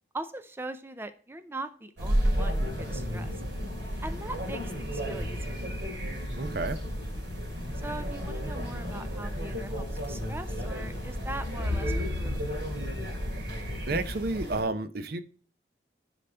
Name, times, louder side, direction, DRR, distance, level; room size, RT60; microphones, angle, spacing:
voice 1, 0.1-3.3 4.0-5.7 7.7-12.9, right 2 dB, 15° right, 0.5 m, -41 dB
sound 1, 2.0-14.6, equal, 80° right, 2.8 m, -32 dB
voice 2, 6.3-6.8 13.9-15.2, right 2 dB, 60° right, 0.7 m, -31 dB
10.0 x 4.1 x 4.3 m
head